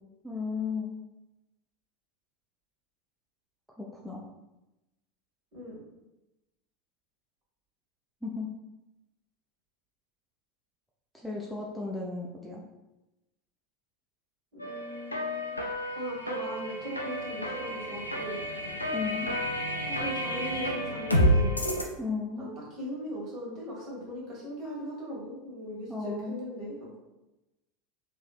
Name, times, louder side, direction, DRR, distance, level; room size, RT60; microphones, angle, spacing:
voice 1, 0.2-1.0 3.8-4.3 8.2-8.5 11.1-12.6 18.9-19.3 22.0-22.5 25.9-26.5, left 4 dB, ahead, -4 dB, 0.4 m, -35 dB
voice 2, 14.5-15.5 15.9-18.4 19.9-21.6 22.4-27.0, equal, 45° right, -4 dB, 1.4 m, -39 dB
sound 1, 14.6-21.8, equal, 90° left, 0.4 m, -30 dB
3.1 x 2.8 x 2.4 m, 0.99 s
figure-of-eight pair, 80°, 0 cm